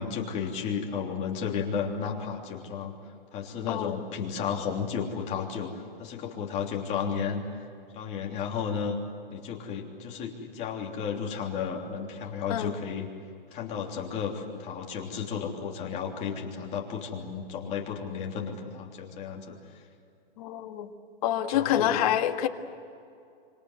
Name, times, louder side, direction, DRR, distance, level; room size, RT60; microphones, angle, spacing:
voice 1, 0.0-2.9 3.3-5.7 6.0-7.4 7.9-9.0 9.3-13.1 13.5-19.6 21.5-22.1, left 6 dB, 20° left, 0 dB, 3.3 m, -33 dB
voice 2, 20.4-20.9 21.2-22.5, left 11 dB, 40° left, 6 dB, 1.7 m, -27 dB
26.5 x 26.5 x 8.1 m, 2.5 s
hypercardioid pair, 155°, 29 cm